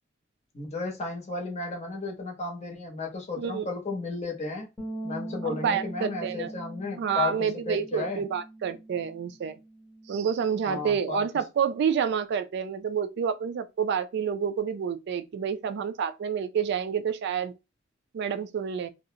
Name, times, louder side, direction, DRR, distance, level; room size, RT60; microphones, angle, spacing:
voice 1, 0.5-4.7 5.0-8.2 10.6-11.2, left 4 dB, 35° left, 0.8 m, -34 dB
sound 1, 4.8-11.0, right 2 dB, 5° left, 0.8 m, -42 dB
voice 2, 5.4-6.5 7.0-9.6 10.1-17.5 18.1-18.9, right 7 dB, 60° right, 0.3 m, -28 dB
2.4 x 2.0 x 2.7 m
head